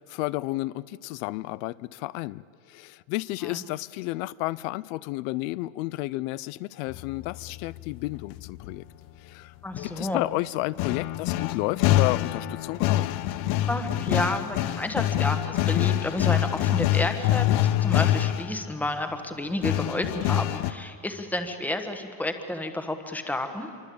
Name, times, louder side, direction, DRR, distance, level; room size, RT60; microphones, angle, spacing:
voice 1, 0.0-8.8 9.2-9.5 9.8-13.1, left 19 dB, 85° left, 19 dB, 0.6 m, -32 dB
sound 1, 6.9-8.7 9.7-18.6 19.6-20.7, left 13 dB, 55° left, 1.0 m, -26 dB
voice 2, 9.6-10.2 13.7-23.7, left 1 dB, 5° left, 7 dB, 1.4 m, -31 dB
26.5 x 24.0 x 8.6 m, 2.4 s
cardioid pair, 175°, 38 cm